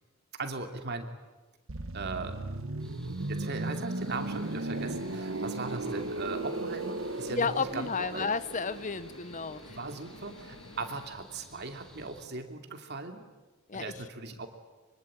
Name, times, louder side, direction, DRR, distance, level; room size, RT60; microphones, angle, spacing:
voice 1, 0.4-1.1 1.9-2.4 3.3-8.3 9.7-13.2 13.7-14.5, right 3 dB, 55° right, 5 dB, 2.7 m, -38 dB
sound 1, 1.7-11.3 11.6-11.8, right 2 dB, 80° right, 1.4 m, -37 dB
sound 2, 2.8-12.3, equal, 5° left, 3.1 m, -57 dB
sound 3, 4.1-11.1, left 3 dB, 70° left, 1.6 m, -52 dB
voice 2, 7.3-9.8 13.7-13.9, left 5 dB, 35° left, 15 dB, 0.8 m, -32 dB
24.5 x 24.0 x 8.9 m, 1.2 s
head